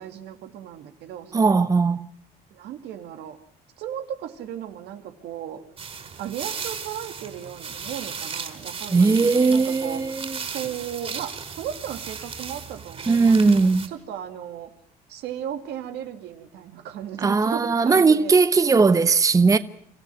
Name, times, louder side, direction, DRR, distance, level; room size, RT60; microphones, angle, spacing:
voice 1, 0.0-1.7 2.5-3.4 3.8-5.6 6.2-14.7 15.1-18.3, right 10 dB, 80° right, 2.4 m, -36 dB
voice 2, 1.3-2.0 8.9-10.4 13.1-13.9 17.2-19.6, right 4 dB, 20° right, 0.9 m, -18 dB
sound 1, 5.8-13.9, right 6 dB, 35° right, 4.3 m, -36 dB
26.0 x 15.0 x 9.3 m
cardioid pair, 110°, 17 cm